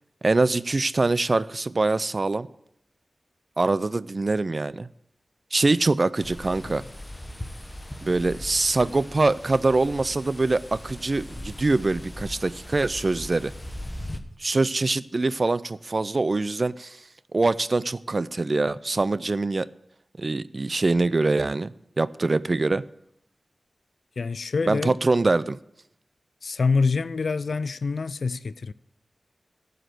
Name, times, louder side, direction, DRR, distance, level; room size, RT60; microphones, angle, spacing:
voice 1, 0.2-2.5 3.6-4.9 5.5-6.8 8.0-13.5 14.4-17.0 17.3-19.7 20.2-22.8 24.7-25.6, right 3 dB, 45° right, 0.4 m, -24 dB
sound 1, 6.2-14.2, left 1 dB, 20° left, 1.0 m, -39 dB
voice 2, 24.2-25.0 26.4-28.7, left 4 dB, 80° left, 0.4 m, -26 dB
14.0 x 5.1 x 7.8 m
wide cardioid pair, 75°, 0 cm